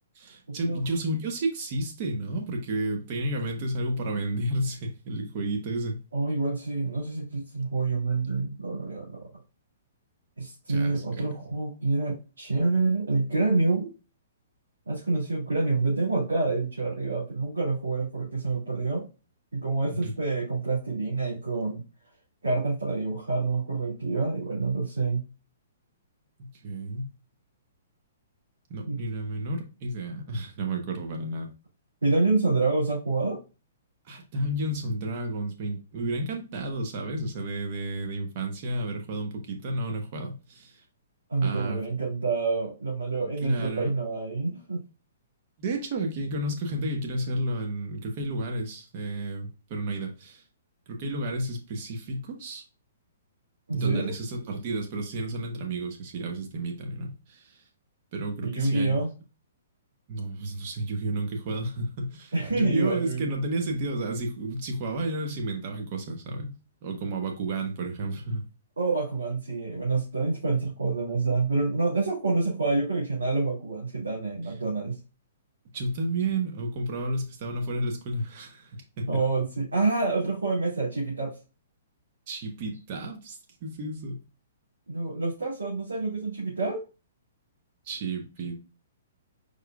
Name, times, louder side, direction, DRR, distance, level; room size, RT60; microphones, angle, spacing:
voice 1, 0.2-6.0 10.7-11.3 19.9-20.1 26.4-27.1 28.7-31.5 34.0-40.8 41.4-41.8 43.4-43.9 45.6-50.4 50.9-52.6 53.7-57.6 58.1-59.0 60.1-66.5 66.8-68.4 75.7-79.1 82.3-84.2 87.8-88.6, right 1 dB, 40° right, 1.1 m, -31 dB
voice 2, 6.1-9.3 10.4-13.9 14.9-19.1 19.5-21.8 22.4-25.2 28.9-29.0 32.0-33.4 41.3-44.8 53.7-54.1 58.4-59.1 62.3-63.3 68.8-75.0 79.1-81.3 84.9-86.8, right 3 dB, 70° right, 2.5 m, -27 dB
4.8 x 4.7 x 2.3 m
figure-of-eight pair, 115°, 0 cm